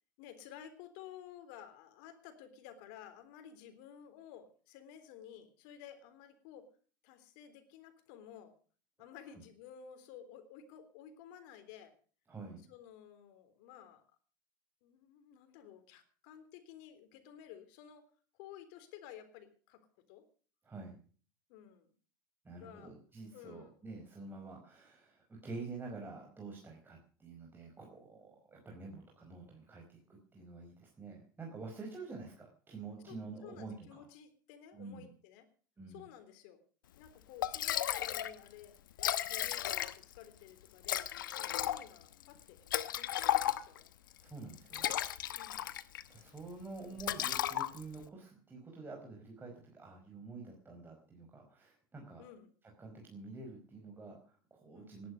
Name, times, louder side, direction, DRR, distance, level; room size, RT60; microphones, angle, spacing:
voice 1, 0.2-6.7 7.0-8.5 9.0-11.9 12.7-14.0 14.8-18.1 18.3-19.8 20.1-20.2 21.5-21.9 22.5-22.9 23.3-23.8 33.1-33.2 33.4-35.5 35.9-36.6 37.0-38.8 39.3-43.9 45.3-45.7 52.2-52.5 54.7-55.0, left 9 dB, 70° left, 10 dB, 3.6 m, -54 dB
voice 2, 12.3-12.6 20.6-21.0 22.4-34.0 34.7-35.0 35.8-36.0 44.2-45.0 46.1-52.2 52.8-55.1, right 3 dB, 20° right, 0 dB, 5.0 m, -48 dB
Liquid, 37.1-37.2 37.4-38.3 38.6-38.7 38.9-40.2 40.8-43.9 44.5-46.1 46.4-46.6 47.0-48.0, left 12 dB, 90° left, 1.0 m, -34 dB
18.0 x 11.5 x 6.4 m, 0.42 s
hypercardioid pair, 95°, 11 cm